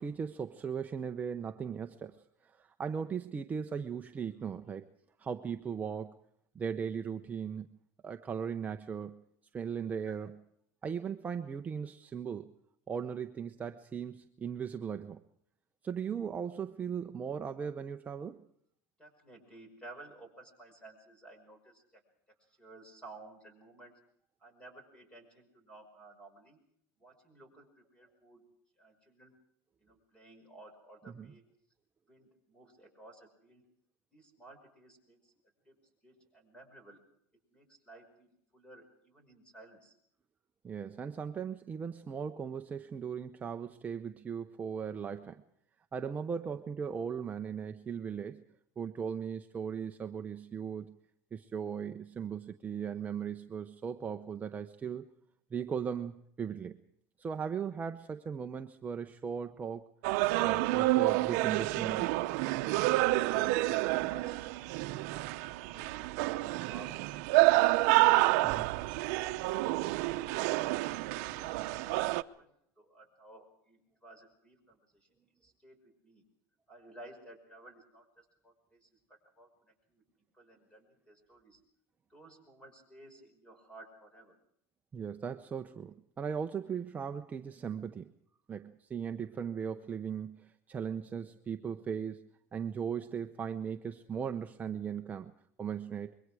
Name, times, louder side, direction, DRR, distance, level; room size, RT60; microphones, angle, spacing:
voice 1, 0.0-4.9 5.2-6.2 6.5-7.7 8.0-9.2 9.5-10.4 10.8-12.5 12.9-15.2 15.8-18.4 31.1-31.3 40.6-45.4 45.9-48.4 48.8-51.0 51.3-55.1 55.5-56.8 57.2-59.9 60.3-62.1 68.4-68.7 84.9-88.1 88.5-95.3 95.6-96.1, right 7 dB, 20° right, 0.7 m, -38 dB
voice 2, 19.0-22.0 22.5-23.9 24.4-26.6 27.0-28.5 28.8-29.3 29.8-31.5 32.1-33.7 34.1-35.3 35.7-35.8 36.0-37.0 37.5-40.0 63.0-65.1 70.5-75.1 75.4-76.2 76.7-79.5 79.9-80.0 80.3-81.6 82.1-84.4, right 2 dB, 10° left, 5.4 m, -55 dB
sound 1, 60.0-72.2, right 19 dB, 65° right, 0.8 m, -29 dB
25.5 x 22.5 x 4.9 m
supercardioid pair, 150°, 9 cm